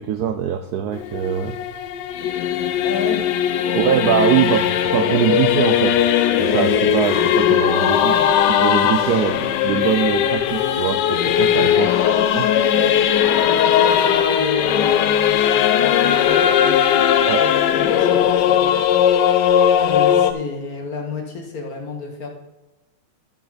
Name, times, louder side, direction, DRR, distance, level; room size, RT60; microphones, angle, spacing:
voice 1, 0.0-1.6 3.7-6.1 6.4-8.1 8.6-11.9 12.3-12.5 17.3-17.4, right 9 dB, 75° right, 8 dB, 0.9 m, -22 dB
Singing / Musical instrument, 0.9-20.3, left 9 dB, 70° left, 1.1 m, -18 dB
voice 2, 2.8-3.3 3.7-4.0 8.0-8.3 11.7-12.2 12.7-18.9 19.7-22.3, left 4 dB, 50° left, 1 dB, 1.6 m, -31 dB
12.5 x 6.7 x 4.0 m, 1.0 s
omnidirectional pair, 2.2 m